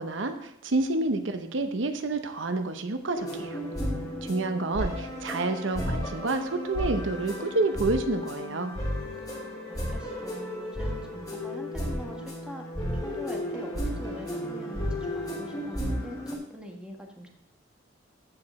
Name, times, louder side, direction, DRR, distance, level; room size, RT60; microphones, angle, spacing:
voice 1, 0.0-3.6 4.2-8.7, right 2 dB, 80° right, 8 dB, 0.8 m, -29 dB
sound 1, 3.1-16.3, left 1 dB, 20° left, 2.9 m, -33 dB
voice 2, 9.3-12.7 13.0-17.3, equal, 5° right, 1 dB, 1.3 m, -43 dB
14.0 x 4.9 x 4.2 m, 0.75 s
head